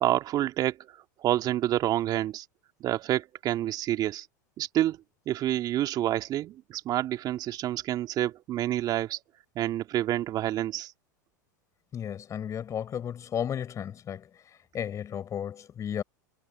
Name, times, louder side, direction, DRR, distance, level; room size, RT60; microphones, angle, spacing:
voice 1, 0.0-2.5 2.8-4.3 4.6-5.0 5.3-9.2 9.6-10.9, right 13 dB, 40° right, 2.2 m, -28 dB
voice 2, 11.9-16.0, left 9 dB, 30° left, 4.4 m, -34 dB
hypercardioid pair, 95°, 10 cm